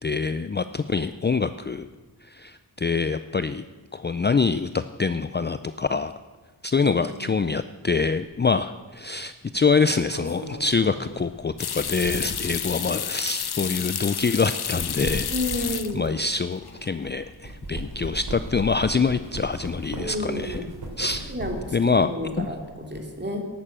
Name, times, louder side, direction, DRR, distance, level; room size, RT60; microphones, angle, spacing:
voice 1, 0.0-1.9 2.2-3.6 3.9-6.1 6.6-15.3 15.6-20.7 21.0-21.3 21.7-22.1 22.4-22.5, left 4 dB, 25° left, 12 dB, 0.5 m, -25 dB
voice 2, 6.8-7.3 15.3-16.0 19.9-20.7 21.3-23.5, left 1 dB, 25° right, 2 dB, 3.0 m, -31 dB
sound 1, 8.3-8.5 9.7-12.6 13.3-13.5 14.5-17.1 17.4-21.8 22.2-23.0, right 2 dB, 70° right, 3.5 m, -37 dB
sound 2, 11.6-16.3 16.5-17.2 17.5-17.6 20.3-20.7 21.0-21.5, left 8 dB, 70° left, 0.8 m, -31 dB
13.5 x 11.5 x 7.5 m, 1.3 s
wide cardioid pair, 75°, 39 cm